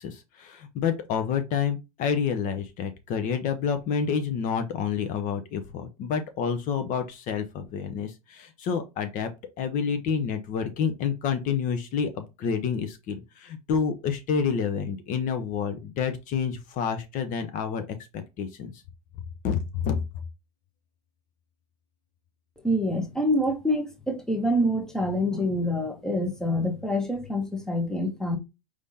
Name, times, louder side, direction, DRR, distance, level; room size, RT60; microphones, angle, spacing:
voice 1, 0.0-9.3 9.6-17.9 18.1-18.7 19.4-20.0, left 6 dB, 45° left, 0.8 m, -28 dB
voice 2, 22.6-28.4, left 1 dB, 5° left, 1.1 m, -26 dB
4.9 x 3.5 x 2.8 m
hypercardioid pair, 110°, 19 cm